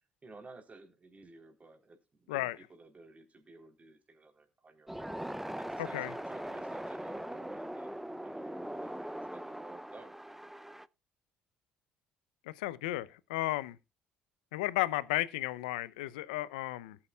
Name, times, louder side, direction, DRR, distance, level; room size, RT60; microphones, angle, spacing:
voice 1, 0.2-5.1 5.6-10.1, right 3 dB, 30° right, 3.8 m, -54 dB
sound 1, 4.9-10.9, right 1 dB, 5° right, 0.6 m, -41 dB
voice 2, 12.5-13.8 14.5-17.0, left 17 dB, 85° left, 0.6 m, -34 dB
18.5 x 8.6 x 2.4 m
hypercardioid pair, 55°, 4 cm